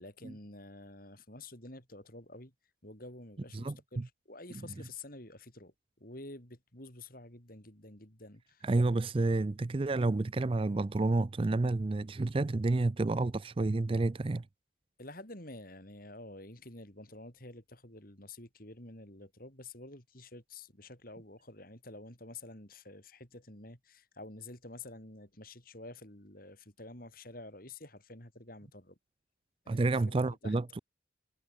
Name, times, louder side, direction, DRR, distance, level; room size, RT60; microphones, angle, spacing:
voice 1, 0.0-2.5 2.8-8.7 15.0-29.0 29.6-30.6, left 2 dB, 45° left, 6.0 m, -49 dB
voice 2, 3.5-4.1 8.6-14.4 29.7-30.8, right 2 dB, 25° right, 0.4 m, -30 dB
head